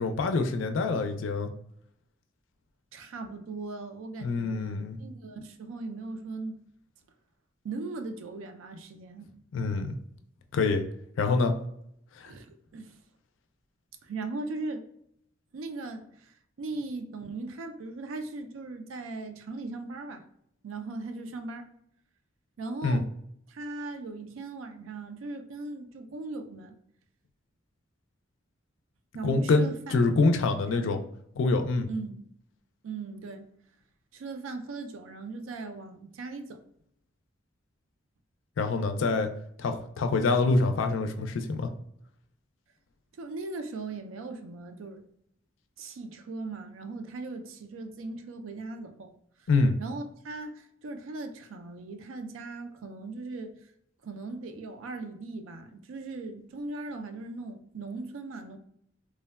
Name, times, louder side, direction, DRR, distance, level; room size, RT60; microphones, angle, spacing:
voice 1, 0.0-1.5 4.2-5.0 9.5-10.0 10.5-10.8 11.2-11.5 12.2-12.3 22.8-23.0 29.2-31.0 31.4-31.9 38.6-39.3 39.6-41.7 49.5-49.8, left 3 dB, 70° left, 6 dB, 0.4 m, -25 dB
voice 2, 2.9-6.6 7.6-9.3 12.3-12.5 12.7-13.0 14.0-14.8 15.5-20.2 20.6-21.7 22.6-23.1 23.5-26.8 29.1-30.2 30.7-31.0 31.9-32.3 32.8-33.4 34.1-36.6 43.2-45.0 45.8-49.1 49.4-49.5 49.8-53.6 54.0-58.6, right 3 dB, 90° right, 7 dB, 0.4 m, -39 dB
3.4 x 2.1 x 2.2 m, 0.72 s
head